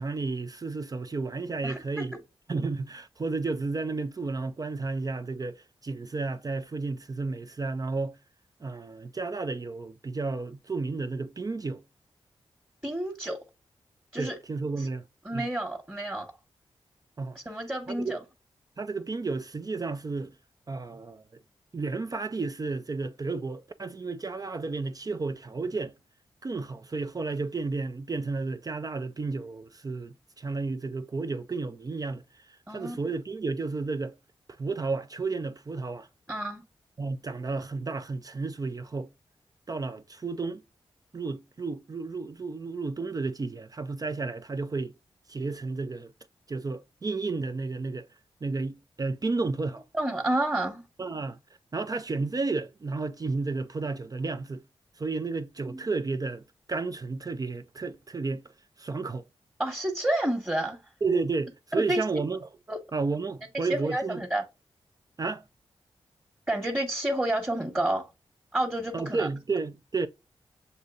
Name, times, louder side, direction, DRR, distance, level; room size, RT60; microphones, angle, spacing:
voice 1, 0.0-2.2 2.5-8.2 8.6-11.8 14.2-15.1 15.3-15.5 17.2-18.2 18.8-20.3 20.7-21.2 21.7-25.9 26.4-34.2 34.6-36.1 37.0-39.1 39.7-40.6 41.1-44.9 45.3-46.1 46.5-48.1 48.4-49.8 51.0-51.4 51.7-54.6 55.0-58.4 58.8-59.3 61.0-62.5 62.9-64.2 65.2-65.4 68.9-70.1, right 3 dB, 35° right, 0.4 m, -32 dB
voice 2, 1.6-2.0 12.8-13.4 14.1-14.4 14.8-14.9 15.2-16.3 17.3-18.2 32.7-33.0 36.3-36.6 49.9-50.8 55.6-55.8 59.6-60.8 61.7-62.0 62.7-62.8 63.7-64.4 66.5-68.1 68.5-69.3, right 1 dB, 15° right, 1.3 m, -29 dB
6.6 x 2.7 x 2.4 m
cardioid pair, 50°, 11 cm